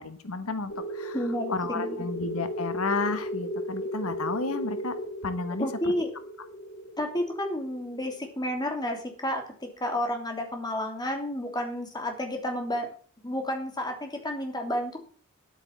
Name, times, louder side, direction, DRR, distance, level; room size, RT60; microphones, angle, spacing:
voice 1, 0.0-1.2 1.5-4.9 5.2-5.7, left 3 dB, 90° left, 11 dB, 1.3 m, -32 dB
sound 1, 0.7-9.0, equal, 60° left, 4.2 m, -36 dB
voice 2, 1.1-2.1 5.6-6.1 7.0-12.9 13.2-15.0, left 1 dB, 20° left, 3 dB, 3.0 m, -31 dB
10.5 x 9.0 x 7.3 m, 0.42 s
head